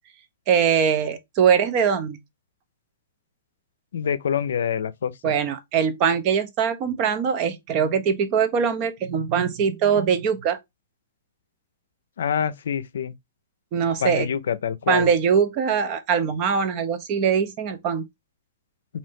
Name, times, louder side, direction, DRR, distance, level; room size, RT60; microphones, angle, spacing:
voice 1, 0.5-2.2 5.2-10.6 13.7-14.3 14.9-18.0, right 7 dB, 40° right, 0.6 m, -22 dB
voice 2, 3.9-5.3 12.2-13.1 14.0-15.1, left 7 dB, 80° left, 0.4 m, -26 dB
2.6 x 2.6 x 3.4 m
hypercardioid pair, 140°, 0 cm